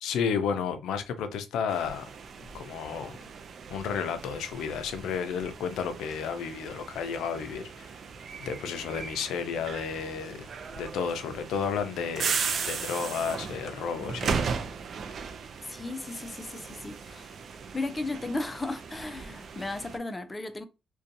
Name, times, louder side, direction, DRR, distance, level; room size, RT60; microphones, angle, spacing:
voice 1, 0.0-2.1 2.5-3.2 3.7-7.9 8.4-10.5 10.8-12.3 12.6-14.4, left 6 dB, 85° left, 0.4 m, -32 dB
sound 1, 1.7-20.0, right 5 dB, 55° right, 0.4 m, -37 dB
voice 2, 15.7-17.4 17.7-20.7, left 2 dB, 20° left, 0.4 m, -35 dB
2.5 x 2.2 x 2.5 m
cardioid pair, 90°, 0 cm